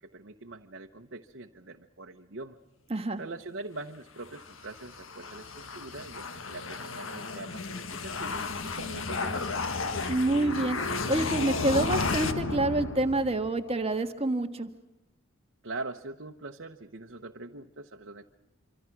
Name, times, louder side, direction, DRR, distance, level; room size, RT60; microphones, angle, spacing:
voice 1, 0.0-2.6 3.2-9.5 15.6-18.3, right 2 dB, 60° right, 3 dB, 1.0 m, -43 dB
voice 2, 2.9-3.2 10.1-10.8 11.1-14.7, right 2 dB, 30° right, 7 dB, 1.5 m, -27 dB
sound 1, 4.2-13.6, left 3 dB, 75° left, 1.7 m, -33 dB
26.0 x 25.5 x 6.0 m, 0.95 s
head